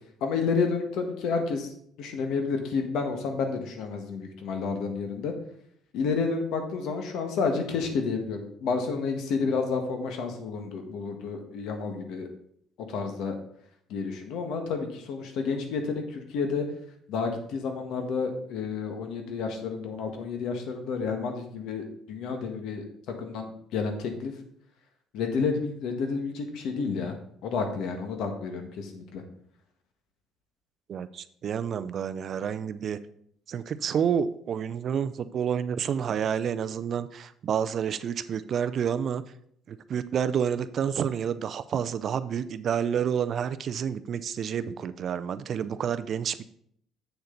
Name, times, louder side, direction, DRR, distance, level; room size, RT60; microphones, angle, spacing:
voice 1, 0.2-1.7 2.0-5.3 5.9-12.3 12.9-13.4 13.9-16.6 17.1-24.3 25.1-27.2 27.4-29.2, left 5 dB, 75° left, 5 dB, 1.5 m, -30 dB
voice 2, 30.9-33.0 33.5-39.2 39.7-46.4, right 8 dB, 45° right, 13 dB, 0.4 m, -29 dB
8.0 x 7.0 x 3.9 m, 0.67 s
cardioid pair, 145°, 0 cm